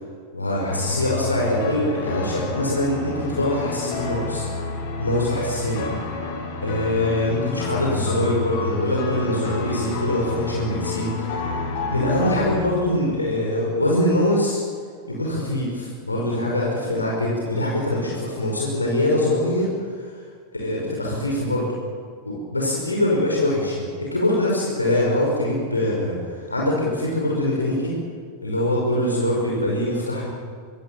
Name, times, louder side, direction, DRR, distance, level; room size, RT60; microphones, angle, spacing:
voice 1, 0.3-4.5 5.0-5.8 6.6-11.1 11.9-14.6 15.1-20.1 20.5-21.7 22.3-28.0 28.4-30.3, left 1 dB, 80° left, -3 dB, 5.3 m, -23 dB
sound 1, 0.7-12.7, left 3 dB, 50° left, 5.9 m, -29 dB
24.0 x 21.0 x 7.3 m, 2.1 s
figure-of-eight pair, 90°, 0 cm